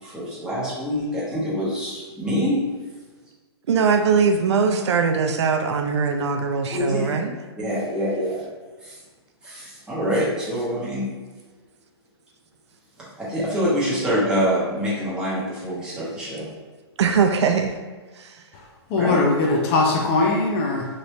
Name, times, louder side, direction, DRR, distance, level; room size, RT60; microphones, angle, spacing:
voice 1, 0.0-2.6 6.7-7.2 7.6-8.4 8.8-9.0 9.4-11.1 13.2-16.4 19.0-19.2, equal, 5° right, -9 dB, 0.9 m, -25 dB
voice 2, 3.7-7.3 17.0-17.7 18.2-18.4, right 5 dB, 80° right, 5 dB, 0.4 m, -21 dB
voice 3, 18.5-20.9, left 3 dB, 25° left, -1 dB, 0.4 m, -21 dB
3.0 x 2.6 x 3.2 m, 1.4 s
hypercardioid pair, 150°, 14 cm